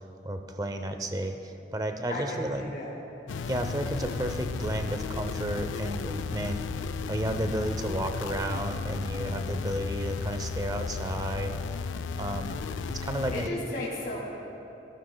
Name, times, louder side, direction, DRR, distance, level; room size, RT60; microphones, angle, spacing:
voice 1, 0.2-2.6 3.5-6.6 7.1-11.5 12.1-12.6 12.8-13.5, right 1 dB, 20° right, 6 dB, 0.6 m, -32 dB
voice 2, 2.1-3.0 13.3-14.2, left 1 dB, 50° left, -6 dB, 1.9 m, -35 dB
sound 1, 3.3-13.5, left 5 dB, 85° left, 0.3 m, -35 dB
sound 2, 3.6-8.7, equal, 70° right, 1.8 m, -43 dB
17.0 x 14.5 x 2.2 m, 3.0 s
head